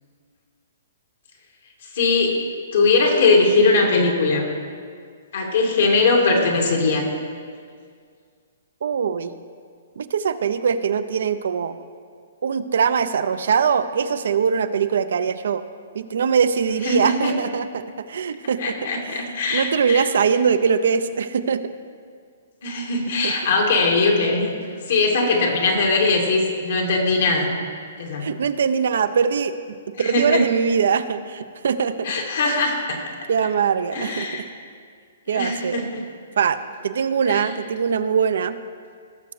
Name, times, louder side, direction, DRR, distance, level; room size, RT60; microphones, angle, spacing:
voice 1, 1.9-2.4 2.7-4.5 5.3-7.1 16.8-17.3 18.6-20.1 22.6-24.5 24.9-27.5 28.0-28.3 30.0-30.4 32.0-33.0 33.9-34.4 35.3-36.0 37.3-37.5, left 3 dB, 70° left, 0 dB, 2.3 m, -20 dB
voice 2, 8.8-9.4 10.0-11.7 12.4-15.6 15.9-18.8 19.0-21.6 23.2-23.3 28.2-32.1 33.3-34.5 35.3-35.8 36.4-36.6 36.8-38.6, right 6 dB, 70° right, 11 dB, 0.5 m, -22 dB
17.5 x 6.8 x 3.2 m, 2.1 s
hypercardioid pair, 145°, 0 cm